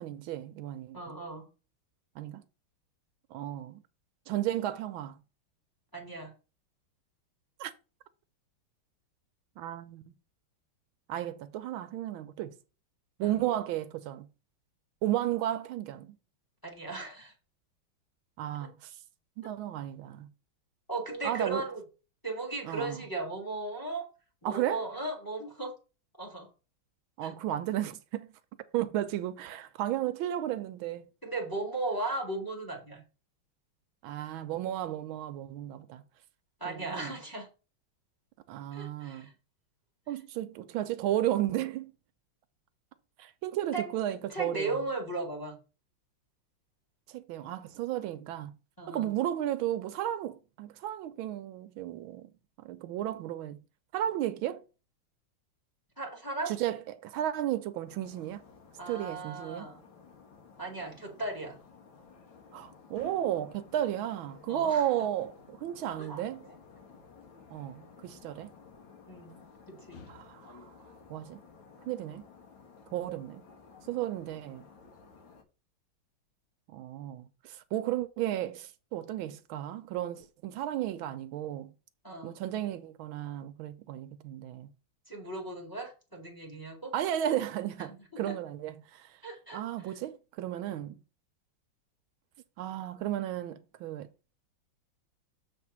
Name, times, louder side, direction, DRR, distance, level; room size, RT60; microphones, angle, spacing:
voice 1, 0.0-1.0 2.2-2.4 3.3-3.8 4.3-5.2 7.6-7.7 9.6-10.0 11.1-12.6 13.2-14.3 15.0-16.2 18.4-19.0 19.4-20.3 21.2-21.6 22.6-23.0 24.4-24.8 27.2-28.3 28.7-31.1 34.0-36.0 36.6-37.1 38.5-39.3 40.1-41.9 43.2-44.8 47.1-48.5 48.9-52.3 52.6-53.6 53.9-54.6 56.4-58.4 58.9-59.7 62.5-66.5 67.5-68.5 70.1-70.7 71.1-71.4 71.8-72.3 72.9-73.4 73.9-74.7 76.7-81.7 82.2-84.7 86.9-89.2 89.5-91.0 92.6-94.1, right 12 dB, 80° right, 1.4 m, -34 dB
voice 2, 0.9-1.5 5.9-6.3 13.2-13.4 16.6-17.3 20.9-21.8 22.2-24.1 24.4-25.7 26.2-26.5 27.2-27.3 31.2-33.0 36.6-37.5 38.7-39.3 43.7-44.0 44.3-45.6 48.8-49.1 56.0-56.6 58.8-59.9 60.6-61.6 64.5-64.9 66.0-66.5 69.1-69.4 69.7-70.0 82.0-82.4 85.1-86.9 88.1-88.3 89.2-89.6 89.9-90.0, right 2 dB, 10° left, 1.5 m, -37 dB
sound 1, 57.8-75.4, left 5 dB, 70° left, 1.8 m, -55 dB
7.2 x 3.5 x 5.8 m
omnidirectional pair, 2.3 m